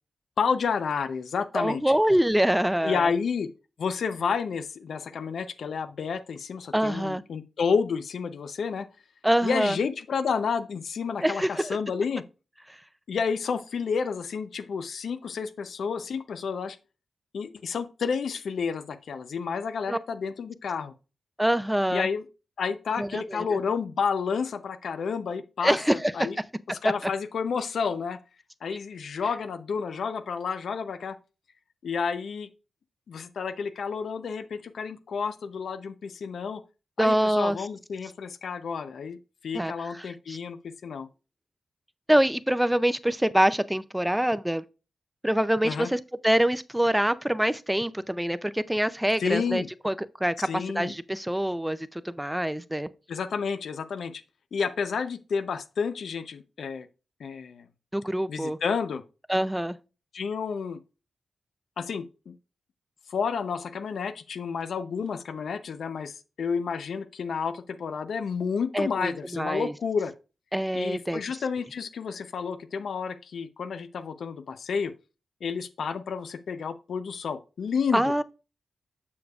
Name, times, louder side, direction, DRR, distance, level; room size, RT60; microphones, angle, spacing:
voice 1, 0.4-1.8 2.8-3.5 3.8-8.9 9.4-12.2 13.1-16.8 17.3-20.9 21.9-22.2 22.6-26.4 26.7-28.2 28.6-31.2 31.8-32.5 33.1-36.6 37.0-39.2 39.4-41.1 45.6-45.9 49.2-49.7 50.4-50.9 53.1-54.2 54.5-56.9 57.2-57.7 58.3-59.0 60.1-60.8 61.8-62.3 63.1-70.1 70.7-74.9 75.4-78.1, left 6 dB, 75° left, 0.6 m, -30 dB
voice 2, 1.5-3.1 6.7-7.2 9.2-9.8 11.2-11.8 12.7-12.8 19.9-20.0 21.4-22.1 23.0-23.6 25.6-26.1 37.0-37.6 39.5-40.4 42.1-44.6 45.2-52.9 57.9-58.6 59.3-59.8 68.7-69.7 70.5-71.2 77.9-78.2, right 1 dB, 5° right, 0.5 m, -25 dB
7.1 x 6.4 x 2.4 m
cardioid pair, 65°, 0 cm